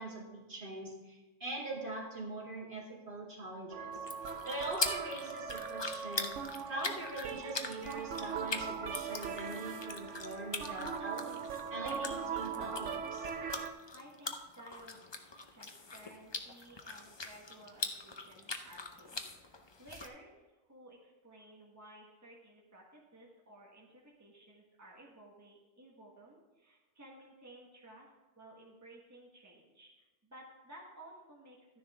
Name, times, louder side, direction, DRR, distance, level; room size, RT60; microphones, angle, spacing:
voice 1, 0.0-4.0 4.4-6.3 6.7-11.4 11.7-13.3, right 2 dB, 45° right, -4 dB, 2.5 m, -42 dB
sound 1, 3.7-13.7, right 6 dB, 75° right, 1.0 m, -40 dB
sound 2, 3.9-20.1, left 3 dB, 30° left, 0.5 m, -42 dB
voice 2, 13.6-15.2 15.5-28.1 28.4-31.8, right 1 dB, 15° right, -3 dB, 1.5 m, -56 dB
12.5 x 10.0 x 3.6 m, 1.1 s
omnidirectional pair, 1.3 m